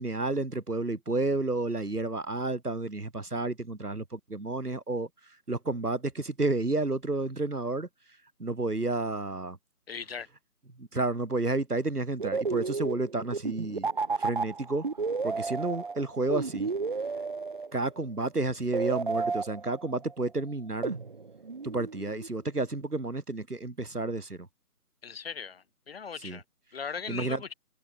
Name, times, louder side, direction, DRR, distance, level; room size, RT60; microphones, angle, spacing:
voice 1, 0.0-5.1 5.5-7.9 8.4-9.6 10.8-13.9 14.2-14.9 15.2-16.7 17.7-21.0 21.6-24.5 26.2-26.4 27.1-27.4, right 2 dB, 80° right, 4.4 m, -31 dB
voice 2, 9.9-10.3 25.0-26.4 26.7-27.5, left 6 dB, 40° left, 3.5 m, -39 dB
sound 1, 12.2-18.0 18.7-20.1 20.8-22.3, right 4 dB, 35° right, 0.8 m, -32 dB
figure-of-eight pair, 150°, 45 cm